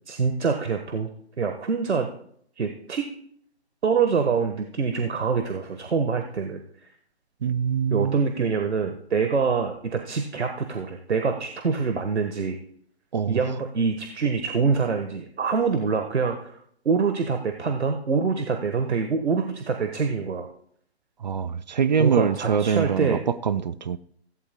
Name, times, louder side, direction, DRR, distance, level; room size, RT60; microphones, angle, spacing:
voice 1, 0.1-1.1 1.4-2.1 2.6-3.0 3.8-6.6 7.9-12.6 13.3-16.6 16.8-20.5 22.0-23.2, right 5 dB, 85° right, 1.4 m, -25 dB
voice 2, 7.4-8.4 13.1-13.4 21.2-24.0, right 7 dB, 40° right, 0.5 m, -24 dB
16.5 x 15.5 x 2.2 m
hypercardioid pair, 155°, 33 cm